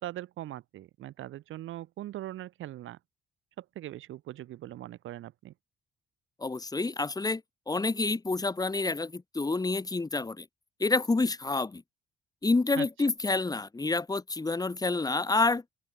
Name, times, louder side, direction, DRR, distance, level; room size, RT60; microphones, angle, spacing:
voice 1, 0.0-3.0 3.6-5.5 12.8-12.9, right 14 dB, 80° right, 4.2 m, -41 dB
voice 2, 6.4-7.4 7.7-10.4 10.8-11.8 12.4-15.6, left 3 dB, 20° left, 1.6 m, -28 dB
open air
cardioid pair, 90°, 20 cm